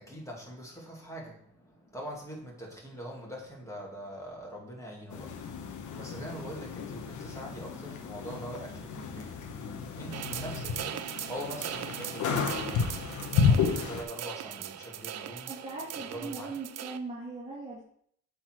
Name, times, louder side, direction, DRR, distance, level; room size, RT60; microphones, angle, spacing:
voice 1, 0.0-15.5 16.0-16.5, equal, 10° left, -2 dB, 2.6 m, -43 dB
sound 1, 5.1-14.0, left 6 dB, 75° left, 1.1 m, -32 dB
sound 2, 10.1-17.0, right 11 dB, 60° right, 0.5 m, -39 dB
voice 2, 15.5-17.8, right 3 dB, 20° right, -7 dB, 2.3 m, -39 dB
7.8 x 4.1 x 4.6 m, 0.65 s
cardioid pair, 90°, 30 cm